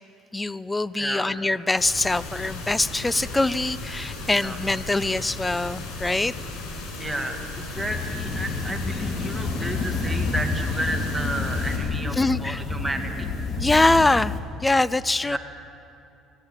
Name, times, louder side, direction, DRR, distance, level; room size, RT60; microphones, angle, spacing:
voice 1, 0.3-6.3 12.2-12.6 13.6-14.3 14.6-15.4, left 2 dB, 10° left, 19 dB, 0.6 m, -23 dB
voice 2, 1.0-1.3 4.3-4.6 7.0-13.3 15.3-15.4, right 1 dB, 5° right, 3 dB, 2.2 m, -32 dB
sound 1, 1.8-11.8, left 2 dB, 80° left, 6.8 m, -36 dB
sound 2, 7.7-14.4, left 4 dB, 40° left, 2.8 m, -29 dB
25.0 x 19.0 x 9.2 m, 2.8 s
cardioid pair, 120°, 0 cm